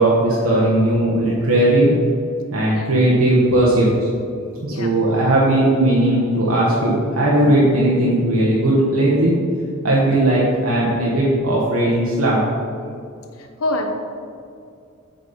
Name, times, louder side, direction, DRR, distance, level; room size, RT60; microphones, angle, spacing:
voice 1, 0.0-2.0 2.5-3.9 4.6-9.3 9.8-12.4, right 1 dB, 75° right, -6 dB, 1.1 m, -17 dB
voice 2, 13.4-13.9, left 1 dB, 75° left, 4 dB, 0.9 m, -26 dB
7.9 x 4.2 x 5.1 m, 2.4 s
head